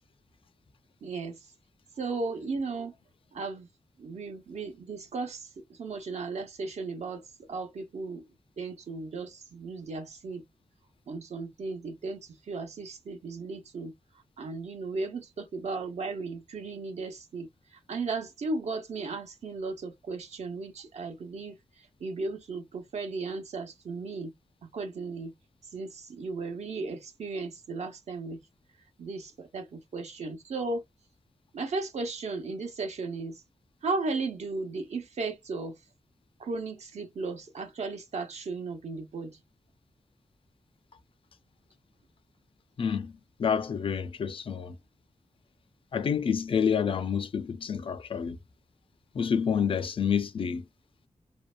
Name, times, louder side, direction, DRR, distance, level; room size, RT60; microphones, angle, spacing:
voice 1, 1.0-1.4 2.0-2.9 3.3-3.7 4.0-7.2 7.5-8.2 8.6-10.4 11.1-12.2 12.5-13.9 14.4-17.5 17.9-21.5 22.0-24.3 24.6-25.3 25.7-28.4 29.0-30.8 31.5-33.4 33.8-35.7 36.4-39.4, right 3 dB, 80° right, 0.8 m, -35 dB
voice 2, 42.8-43.1 43.4-44.8 45.9-48.4 49.2-50.6, left 7 dB, 50° left, 0.4 m, -28 dB
2.6 x 2.1 x 2.4 m
wide cardioid pair, 155°, 11 cm